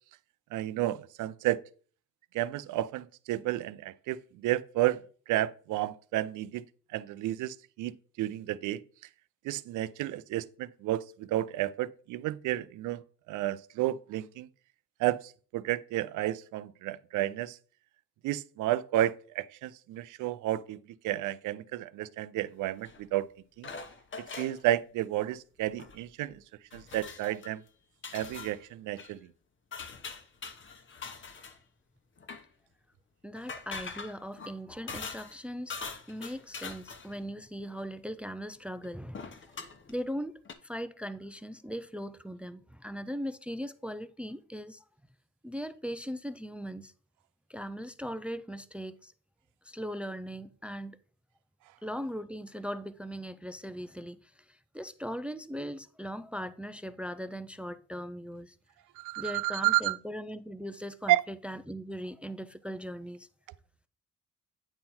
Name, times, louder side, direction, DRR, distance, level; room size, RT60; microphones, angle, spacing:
voice 1, 0.5-1.6 2.3-5.0 5.3-6.7 6.9-8.8 9.4-14.5 15.0-17.6 18.2-23.3 23.6-23.7 24.2-26.4 26.7-27.6 28.1-29.2 59.0-60.0 61.1-61.2, right 14 dB, 85° right, 0.5 m, -31 dB
sound 1, 22.8-23.0 23.6-24.6 25.7-26.0 26.3-26.4 26.7-27.5 28.0-28.6 29.0-29.1 29.7-31.6 32.2-32.4 33.4-35.4 35.7-37.2 38.8-38.9 39.1-39.9 40.4-40.5, left 5 dB, 40° left, 1.0 m, -43 dB
voice 2, 33.2-35.8 36.1-39.5 39.9-44.8 45.4-46.9 47.5-49.1 49.6-51.0 51.8-58.6 59.2-63.3, equal, 5° right, 0.4 m, -39 dB
9.0 x 3.8 x 4.3 m
cardioid pair, 90°, 30 cm